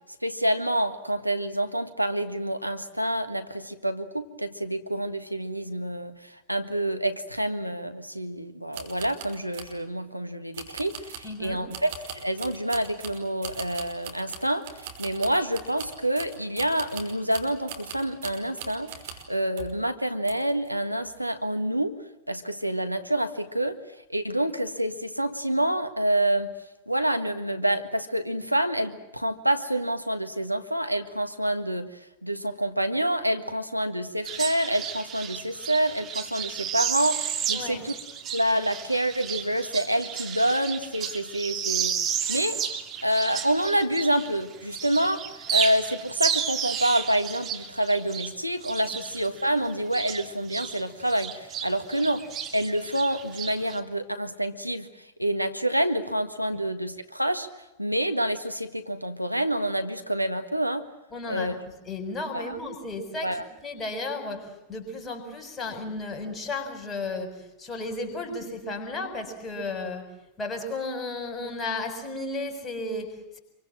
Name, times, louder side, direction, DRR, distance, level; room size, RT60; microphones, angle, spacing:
voice 1, 0.2-18.9 19.3-22.0 22.3-23.8 24.1-26.5 26.9-31.9 32.2-37.9 38.3-42.0 42.3-42.6 43.0-52.3 52.5-54.9 55.2-57.5 57.8-60.8 61.3-61.5 62.3-62.6 63.2-63.4, right 1 dB, 90° right, 8 dB, 1.6 m, -27 dB
sound 1, 8.7-9.8 10.5-19.3 19.6-19.8 20.2-20.7 21.0-21.2, right 7 dB, 55° right, 5.5 m, -41 dB
voice 2, 11.2-11.6 37.5-37.9 61.1-61.5 61.9-70.1 70.4-73.4, left 2 dB, 20° left, 4 dB, 6.9 m, -34 dB
sound 2, 34.2-44.4 44.7-50.8 51.1-53.8, right 8 dB, 30° right, 2.8 m, -32 dB
27.5 x 24.0 x 7.6 m, 0.94 s
figure-of-eight pair, 90°, 0 cm